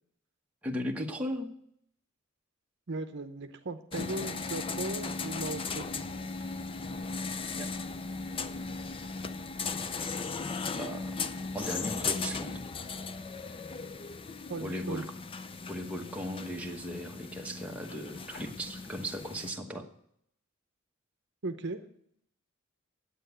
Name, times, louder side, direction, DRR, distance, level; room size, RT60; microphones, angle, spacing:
voice 1, 0.6-1.5 7.6-7.7 10.8-11.2 11.5-12.6 14.6-15.1 15.7-19.8, equal, 5° right, 0 dB, 1.1 m, -37 dB
voice 2, 2.9-6.0 14.5-15.1 21.4-21.8, right 2 dB, 55° right, 8 dB, 0.8 m, -37 dB
sound 1, 3.9-19.5, left 4 dB, 25° left, 0.4 m, -37 dB
10.0 x 8.4 x 8.0 m, 0.70 s
head